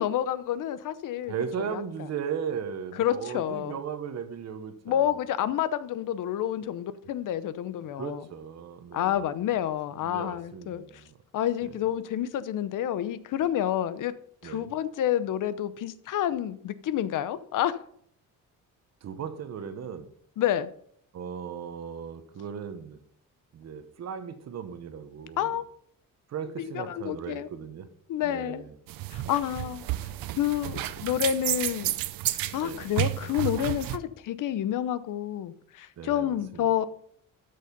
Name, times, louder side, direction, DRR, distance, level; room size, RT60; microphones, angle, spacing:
voice 1, 0.0-1.3 1.7-1.8 3.0-3.8 4.9-8.2 8.9-10.8 11.3-14.1 14.4-17.8 20.4-20.7 25.4-25.6 26.6-27.5 28.1-28.6 29.1-29.9 30.4-31.9 32.3-36.9, left 11 dB, 65° left, 0.8 m, -29 dB
voice 2, 1.3-5.1 8.0-9.3 10.0-11.1 11.6-11.7 14.4-14.7 19.0-20.1 21.1-23.0 23.5-25.5 26.3-27.9 28.2-28.7 32.6-32.9 36.0-36.7, right 7 dB, 50° right, 1.2 m, -37 dB
cleaning fridge, 28.9-34.0, right 15 dB, 85° right, 0.7 m, -31 dB
13.0 x 6.6 x 5.3 m
cardioid pair, 170°, 33 cm